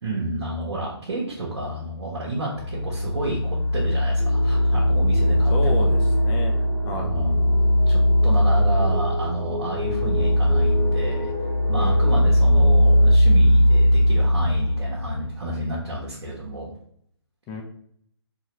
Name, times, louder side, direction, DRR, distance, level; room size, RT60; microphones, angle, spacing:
voice 1, 0.0-5.9 6.9-7.5 7.9-11.3 11.7-16.7, right 1 dB, 75° right, -5 dB, 1.0 m, -30 dB
sound 1, 2.6-15.3, equal, 40° left, 0.9 m, -19 dB
sound 2, 4.2-13.2, left 1 dB, 5° right, 1.0 m, -34 dB
voice 2, 5.5-6.6 6.8-7.1 11.8-12.3 17.5-17.6, left 2 dB, 15° left, 2 dB, 0.3 m, -32 dB
3.8 x 2.2 x 2.9 m, 0.66 s
figure-of-eight pair, 135°, 14 cm